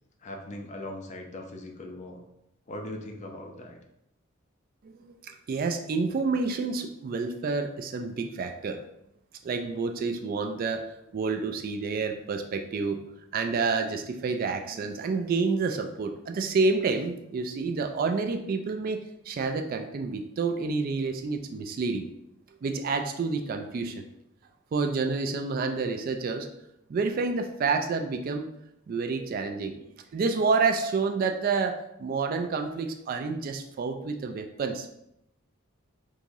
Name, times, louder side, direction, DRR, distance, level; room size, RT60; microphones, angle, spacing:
voice 1, 0.2-2.2 2.7-3.8, left 1 dB, 35° left, 3 dB, 0.5 m, -40 dB
voice 2, 4.8-8.8 9.4-13.0 13.3-22.1 22.6-24.0 24.7-26.5 26.9-28.5 28.9-29.8 30.1-34.9, right 4 dB, 45° right, 5 dB, 0.3 m, -29 dB
3.5 x 2.9 x 2.7 m, 0.81 s
head